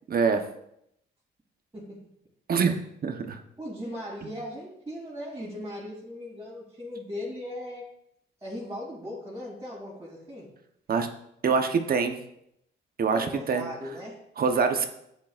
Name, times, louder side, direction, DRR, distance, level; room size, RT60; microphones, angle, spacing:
voice 1, 0.1-0.4 2.5-2.7 3.0-3.4 10.9-11.1 11.4-12.2 13.0-13.6 14.4-14.9, right 5 dB, 50° right, 6 dB, 0.9 m, -24 dB
voice 2, 3.6-7.8 8.4-10.5 13.1-14.2, left 1 dB, 15° right, -7 dB, 2.8 m, -38 dB
10.5 x 8.3 x 2.5 m, 0.76 s
cardioid pair, 90°, 20 cm